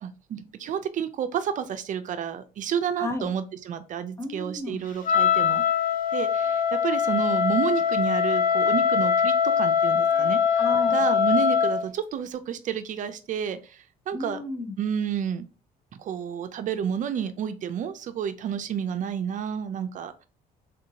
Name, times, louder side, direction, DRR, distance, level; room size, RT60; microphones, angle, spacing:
voice 1, 0.0-5.6 6.1-10.4 10.9-14.4 14.8-15.4 16.0-20.1, right 8 dB, 50° right, 10 dB, 0.4 m, -30 dB
voice 2, 3.0-3.3 4.2-4.8 10.5-11.1 14.1-14.8, left 2 dB, 15° left, 6 dB, 0.7 m, -33 dB
Wind instrument woodwind instrument, 5.0-11.8, left 7 dB, 50° left, 0.8 m, -22 dB
3.6 x 2.7 x 2.7 m, 0.33 s
cardioid pair, 110°, 17 cm